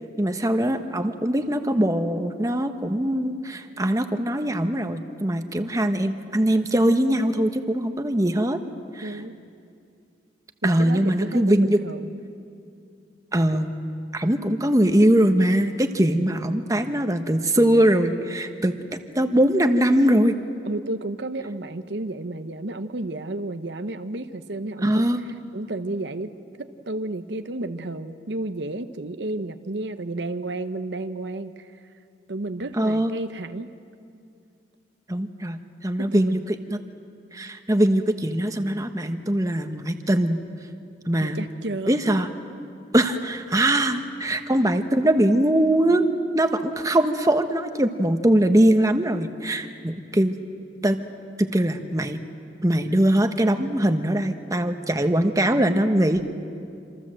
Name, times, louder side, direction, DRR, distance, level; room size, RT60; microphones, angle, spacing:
voice 1, 0.2-8.6 8.9-9.2 10.6-11.8 13.3-13.7 14.1-18.7 19.1-20.4 24.8-25.2 32.8-33.2 35.1-36.8 37.3-40.4 41.1-41.4 41.9-42.3 42.9-46.0 46.3-50.4 50.8-51.0 51.4-52.2 52.6-56.2, right 1 dB, 20° right, 7 dB, 1.2 m, -21 dB
voice 2, 9.0-9.3 10.6-12.1 20.6-25.0 25.5-26.3 26.6-31.7 32.3-33.7 36.0-36.4 41.2-42.2, right 2 dB, 75° right, 9 dB, 1.0 m, -32 dB
27.0 x 26.5 x 7.7 m, 2.5 s
head